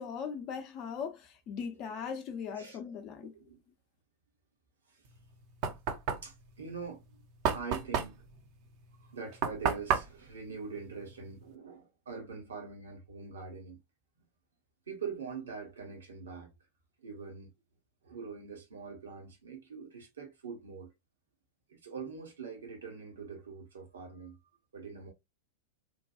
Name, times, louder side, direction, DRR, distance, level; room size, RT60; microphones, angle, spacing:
voice 1, 0.0-3.3, left 6 dB, 35° left, 0.6 m, -39 dB
voice 2, 3.2-3.6 4.9-5.1 6.2-7.2 7.5-8.2 9.0-13.8 14.9-16.5 17.0-17.5 18.0-20.9 21.7-24.4 24.7-25.1, right 5 dB, 70° right, 1.0 m, -43 dB
Knock, 5.1-11.5, right 7 dB, 45° right, 0.6 m, -34 dB
3.0 x 2.2 x 2.5 m
figure-of-eight pair, 90°, 0 cm